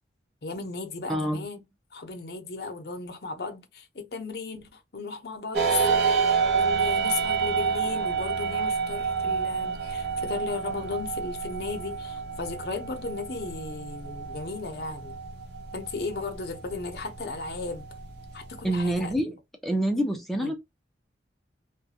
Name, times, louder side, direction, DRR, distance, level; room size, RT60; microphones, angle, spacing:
voice 1, 0.4-1.6 1.9-15.2 15.7-17.9 18.3-19.1 20.3-20.5, left 4 dB, 60° left, 0.7 m, -35 dB
voice 2, 1.1-1.5 18.6-19.4 19.6-20.6, right 1 dB, ahead, 0.5 m, -26 dB
sound 1, 5.5-19.2, right 5 dB, 70° right, 0.7 m, -29 dB
2.4 x 2.2 x 2.7 m
head